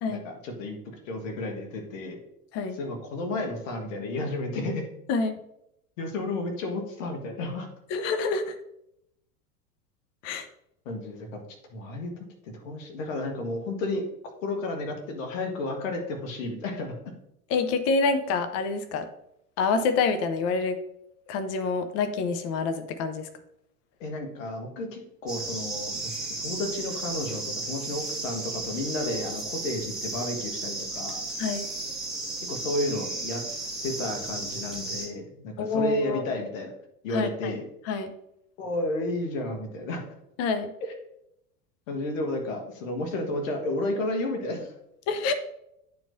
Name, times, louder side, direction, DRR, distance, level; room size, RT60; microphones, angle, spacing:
voice 1, 0.1-0.8 1.1-2.2 2.8-4.8 6.0-7.7 10.8-11.4 11.7-12.1 12.6-14.0 14.4-17.1 24.0-26.1 26.4-31.2 32.5-33.4 33.8-36.7 37.0-37.6 38.6-40.0 41.9-44.7, left 2 dB, 55° left, 4 dB, 1.6 m, -32 dB
voice 2, 7.9-8.6 10.2-10.5 17.5-19.1 19.6-20.8 21.3-23.3 31.4-31.7 35.6-36.2 37.1-37.5 37.8-38.1 40.4-40.7 45.1-45.3, left 4 dB, 35° left, 9 dB, 0.7 m, -27 dB
sound 1, 25.3-35.1, right 2 dB, ahead, 1.4 m, -34 dB
10.0 x 4.6 x 2.6 m, 0.79 s
figure-of-eight pair, 85°, 46 cm